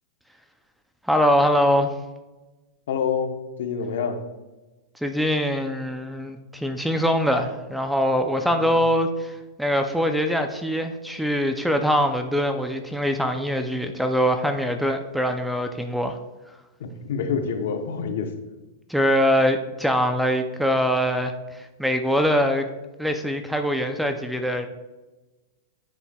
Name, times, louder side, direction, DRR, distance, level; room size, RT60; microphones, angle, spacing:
voice 1, 1.1-1.9 5.0-16.2 18.9-22.7 23.0-24.7, equal, ahead, 7 dB, 0.4 m, -23 dB
voice 2, 2.9-3.3 3.6-4.2 8.4-8.7 16.8-18.3, left 6 dB, 70° left, 6 dB, 0.8 m, -27 dB
9.9 x 4.5 x 2.2 m, 1.1 s
hypercardioid pair, 145°, 0 cm